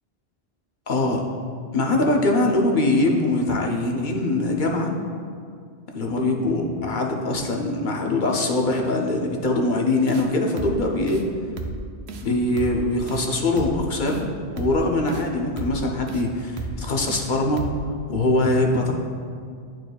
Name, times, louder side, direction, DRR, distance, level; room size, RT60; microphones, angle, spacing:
voice 1, 0.9-1.2 1.7-4.9 5.9-11.2 12.2-14.3 14.6-17.6 18.1-18.9, left 2 dB, 55° left, 1 dB, 0.7 m, -22 dB
sound 1, 10.1-10.3 10.6-10.8 11.1-11.2 11.6-11.8 12.1-12.3 12.6-12.8 13.1-13.3 13.6-13.8 14.1-14.2 14.6-14.8 15.1-15.3 15.6-15.8 16.1-16.2 16.6-16.8 17.1-17.3 17.6-17.8, right 4 dB, 75° right, 0.8 m, -33 dB
10.5 x 4.6 x 2.3 m, 2.2 s
omnidirectional pair, 1.1 m